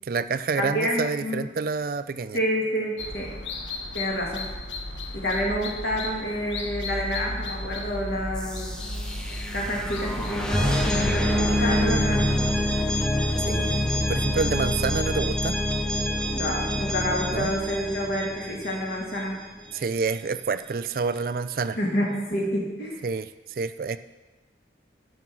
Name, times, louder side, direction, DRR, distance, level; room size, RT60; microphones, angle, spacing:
voice 1, 0.0-2.4 13.4-15.6 17.3-17.5 19.7-21.8 23.0-24.0, right 4 dB, 50° right, 13 dB, 0.3 m, -28 dB
voice 2, 0.6-1.4 2.3-3.3 3.9-4.4 5.1-8.8 9.5-12.4 16.3-19.4 21.8-23.0, equal, 65° left, -1 dB, 2.2 m, -28 dB
sound 1, 3.0-11.2, left 2 dB, 85° left, 1.1 m, -35 dB
sound 2, 8.4-19.2, left 1 dB, 5° left, 0.5 m, -26 dB
11.0 x 5.8 x 6.1 m, 1.2 s
head